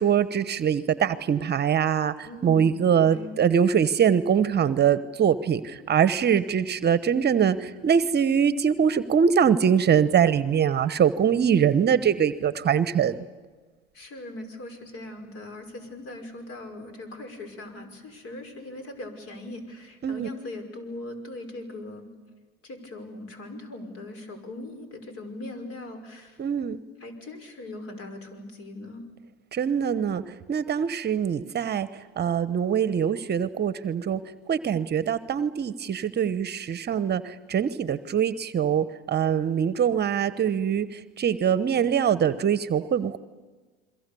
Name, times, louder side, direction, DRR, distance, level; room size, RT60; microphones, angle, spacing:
voice 1, 0.0-13.2 20.0-20.3 26.4-26.8 29.5-34.2 34.5-43.2, right 8 dB, 35° right, 14 dB, 1.0 m, -23 dB
voice 2, 2.2-3.4 13.9-22.1 22.6-26.4 27.0-29.0, left 2 dB, 50° left, 7 dB, 5.7 m, -40 dB
29.5 x 22.5 x 7.0 m, 1.3 s
hypercardioid pair, 85°, 30 cm